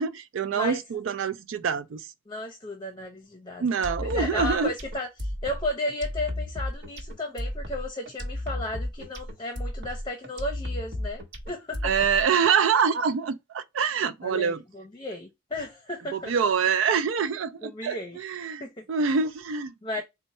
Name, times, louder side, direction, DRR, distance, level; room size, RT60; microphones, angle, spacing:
voice 1, 0.0-2.1 3.6-4.7 11.8-14.6 16.1-19.7, right 6 dB, 85° right, 0.4 m, -25 dB
voice 2, 2.3-3.6 4.0-11.9 14.2-16.3 17.6-18.2 18.6-18.9 19.8-20.0, left 1 dB, 25° left, 0.7 m, -34 dB
sound 1, 3.8-12.5, left 1 dB, 60° right, 1.2 m, -34 dB
4.3 x 2.1 x 4.1 m
head